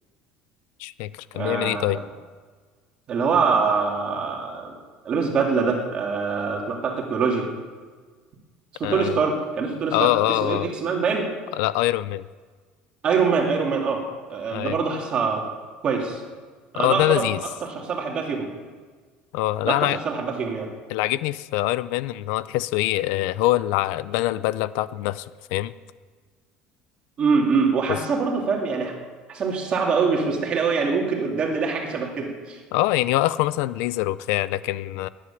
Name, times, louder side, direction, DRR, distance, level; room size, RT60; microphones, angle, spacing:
voice 1, 0.8-2.0 8.8-9.2 9.9-10.7 11.5-12.2 14.5-14.7 16.7-17.4 19.3-20.0 20.9-25.7 27.9-28.0 32.7-35.1, left 16 dB, 75° left, 17 dB, 0.5 m, -24 dB
voice 2, 1.3-2.0 3.1-4.7 5.0-7.5 8.7-11.3 13.0-14.0 14.3-15.4 15.8-16.2 16.7-17.3 17.6-18.5 19.6-20.7 27.2-28.9 29.3-32.6, right 5 dB, 30° right, 1 dB, 2.6 m, -24 dB
13.0 x 10.0 x 10.0 m, 1.5 s
cardioid pair, 170°, 3 cm